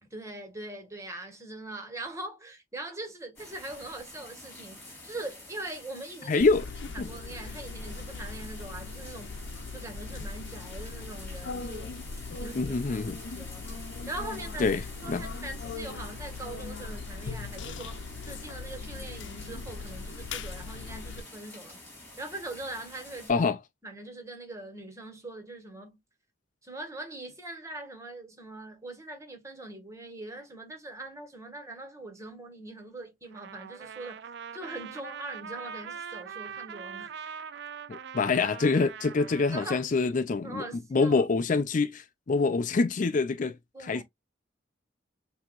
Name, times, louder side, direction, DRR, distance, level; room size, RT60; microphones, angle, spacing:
voice 1, 0.0-6.5 6.9-9.4 9.7-11.9 12.3-13.0 13.3-13.7 14.1-14.7 15.0-21.8 22.2-23.5 23.8-26.0 26.6-34.3 34.5-37.1 39.5-39.8 40.4-41.2 43.7-44.0, right 2 dB, 15° right, 1.8 m, -42 dB
sound 1, 3.4-23.3, left 2 dB, 10° left, 4.1 m, -48 dB
voice 2, 6.3-6.7 7.0-7.1 12.6-13.2 14.6-14.8 15.1-15.2 23.3-23.6 37.9-40.6 40.9-43.6 43.8-44.0, left 4 dB, 45° left, 0.4 m, -25 dB
sound 2, 6.4-21.2, left 3 dB, 85° left, 0.7 m, -40 dB
Trumpet, 33.3-39.8, right 7 dB, 65° right, 0.4 m, -42 dB
6.9 x 2.9 x 2.4 m
head